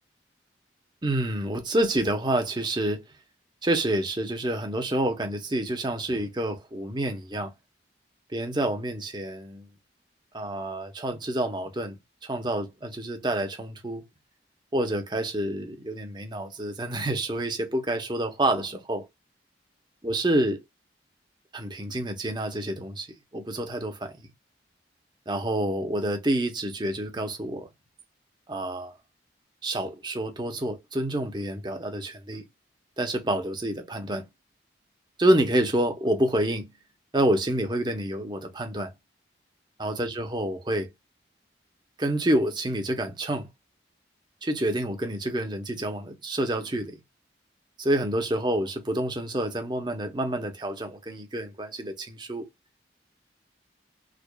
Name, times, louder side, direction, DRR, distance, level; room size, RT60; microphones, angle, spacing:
voice 1, 1.0-3.0 3.6-7.5 8.3-9.7 10.3-14.0 14.7-19.0 20.0-20.6 21.5-23.1 23.3-24.3 25.3-27.7 28.5-28.9 29.6-32.4 33.0-34.3 35.2-36.7 37.1-38.9 39.8-40.9 42.0-43.5 44.4-47.0 47.8-52.5, right 1 dB, 25° right, 0.8 m, -28 dB
5.0 x 2.4 x 2.3 m
head